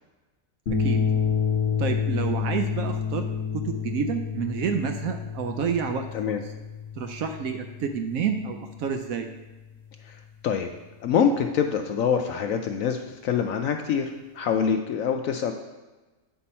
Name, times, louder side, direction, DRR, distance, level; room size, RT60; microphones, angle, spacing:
sound 1, 0.7-9.1, left 6 dB, 45° left, 1.1 m, -29 dB
voice 1, 1.8-3.3 3.5-6.4 7.0-9.3, right 7 dB, 70° right, 6 dB, 0.9 m, -29 dB
voice 2, 10.0-10.7 11.0-15.5, left 7 dB, 70° left, 5 dB, 0.8 m, -25 dB
8.2 x 5.6 x 4.2 m, 1.2 s
omnidirectional pair, 1.8 m